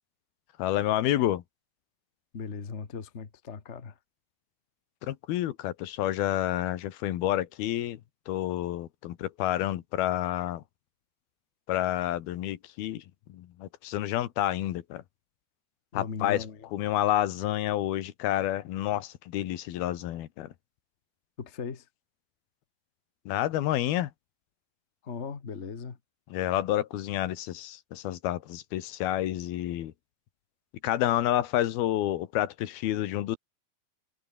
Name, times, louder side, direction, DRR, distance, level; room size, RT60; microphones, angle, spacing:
voice 1, 0.6-1.4 5.0-8.0 8.3-10.6 11.7-13.0 13.3-15.0 15.9-16.4 16.7-20.5 23.3-24.1 26.3-29.9 30.8-33.4, left 13 dB, 80° left, 3.2 m, -29 dB
voice 2, 2.3-4.0 15.9-16.7 21.4-21.9 25.0-26.0, left 5 dB, 55° left, 0.7 m, -38 dB
omnidirectional pair, 4.3 m